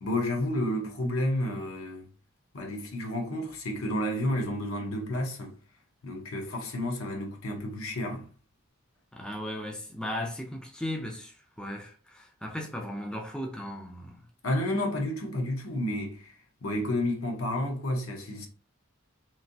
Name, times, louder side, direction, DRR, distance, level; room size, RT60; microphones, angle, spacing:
voice 1, 0.0-2.1 2.5-5.6 6.0-8.3 14.4-18.5, left 1 dB, 75° left, 0.8 m, -31 dB
voice 2, 9.1-14.3, left 1 dB, 5° left, 0.4 m, -36 dB
3.1 x 2.6 x 2.6 m
head